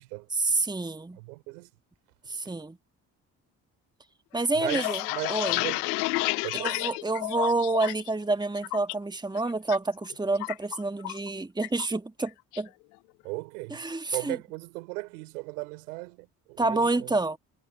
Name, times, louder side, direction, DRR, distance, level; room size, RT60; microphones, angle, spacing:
voice 1, 0.3-1.2 2.3-2.8 4.3-5.0 5.3-5.6 6.5-12.7 13.7-14.4 16.6-17.4, right 2 dB, 10° right, 1.4 m, -28 dB
voice 2, 1.2-1.7 4.5-5.9 6.4-6.8 13.2-13.8 14.1-17.1, right 26 dB, 85° right, 3.6 m, -37 dB
sound 1, 4.4-8.1 8.4-8.9 9.3-9.8 10.0-11.3 11.6-11.9 12.2-12.7, left 26 dB, 85° left, 0.6 m, -31 dB
hypercardioid pair, 50°, 44 cm